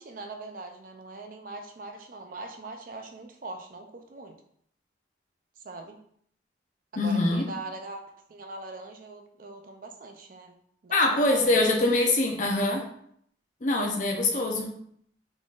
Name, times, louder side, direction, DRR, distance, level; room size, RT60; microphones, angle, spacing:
voice 1, 0.0-4.4 5.6-6.0 6.9-8.0 8.3-10.6 10.8-11.0 11.3-11.6 14.2-14.5, right 3 dB, 45° right, 4 dB, 0.5 m, -41 dB
voice 2, 7.0-7.5 10.9-12.9 13.6-14.7, left 2 dB, 40° left, 2 dB, 0.6 m, -24 dB
3.9 x 3.7 x 2.4 m, 0.67 s
head